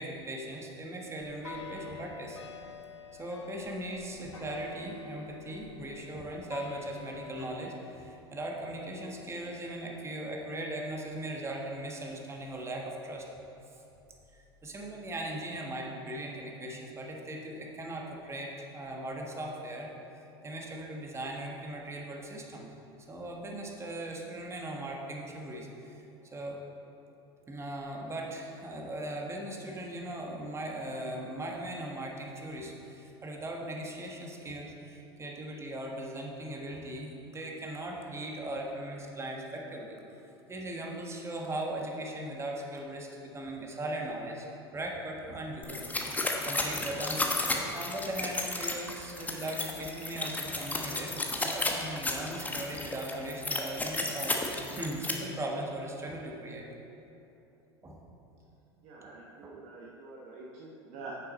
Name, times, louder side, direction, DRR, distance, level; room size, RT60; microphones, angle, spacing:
voice 1, 0.0-2.4 3.2-13.2 14.3-19.9 20.4-22.7 23.1-26.0 26.3-26.6 27.5-40.0 40.5-44.5 44.7-56.6 57.8-58.0, right 1 dB, 20° right, 0 dB, 1.4 m, -39 dB
sound 1, 1.2-7.5, left 5 dB, 85° left, 0.6 m, -46 dB
sound 2, 45.6-55.1, left 2 dB, 10° left, 1.0 m, -33 dB
voice 2, 58.8-61.1, right 3 dB, 50° right, -3 dB, 1.1 m, -46 dB
9.6 x 6.6 x 4.2 m, 3.0 s
hypercardioid pair, 85°, 14 cm